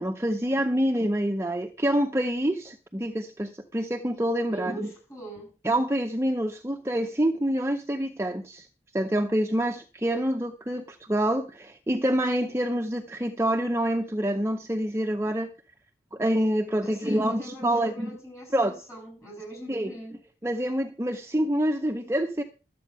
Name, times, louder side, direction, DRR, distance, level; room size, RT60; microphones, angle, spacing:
voice 1, 0.0-4.9 5.6-8.7 8.9-15.5 16.1-18.1 18.5-18.7 19.7-19.9 20.4-22.4, right 1 dB, 15° right, 0.7 m, -26 dB
voice 2, 4.5-5.5 16.8-20.2, right 1 dB, 15° left, 7.5 m, -42 dB
13.0 x 8.4 x 5.5 m
head